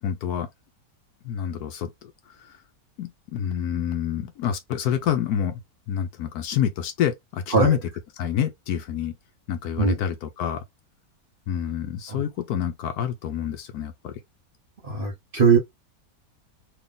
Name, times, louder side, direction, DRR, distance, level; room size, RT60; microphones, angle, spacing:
voice 1, 0.0-0.5 1.2-2.6 3.0-5.6 5.9-7.8 8.2-9.1 9.5-10.6 11.5-14.1, left 9 dB, 70° left, 1.1 m, -27 dB
voice 2, 14.8-15.6, right 5 dB, 40° right, 0.8 m, -20 dB
3.4 x 2.3 x 3.7 m
omnidirectional pair, 1.8 m